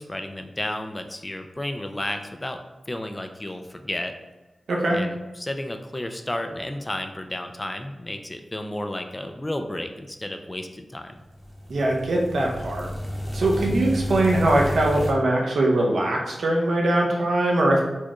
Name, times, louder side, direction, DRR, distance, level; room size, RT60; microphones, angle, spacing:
voice 1, 0.0-2.6 2.9-4.1 4.9-11.1, left 1 dB, 25° left, 6 dB, 0.4 m, -32 dB
voice 2, 4.7-5.0 11.7-12.9 13.3-17.8, right 1 dB, 85° right, -2 dB, 0.7 m, -21 dB
sound 1, 11.2-15.1, equal, 10° right, 0.9 m, -31 dB
4.3 x 2.3 x 3.0 m, 1.1 s
cardioid pair, 60°, 0 cm